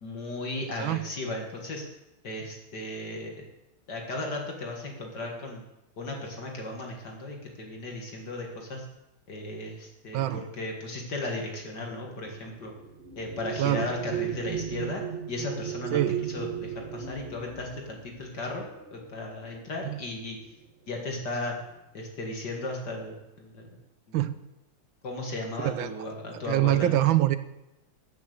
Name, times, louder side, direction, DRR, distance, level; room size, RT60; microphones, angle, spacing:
voice 1, 0.0-1.8 2.2-3.4 3.9-5.6 6.0-8.9 9.3-12.7 13.2-15.0 15.3-18.7 18.9-20.4 20.9-21.6 21.9-23.7 24.1-24.2 25.0-27.0, left 2 dB, 55° left, 1 dB, 2.4 m, -36 dB
sound 1, 10.6-19.6 20.5-20.6 21.0-21.5, right 9 dB, 30° right, 2.4 m, -37 dB
voice 2, 25.6-25.9 26.5-27.4, right 14 dB, 80° right, 13 dB, 1.4 m, -24 dB
15.0 x 6.8 x 6.8 m, 0.93 s
omnidirectional pair, 2.2 m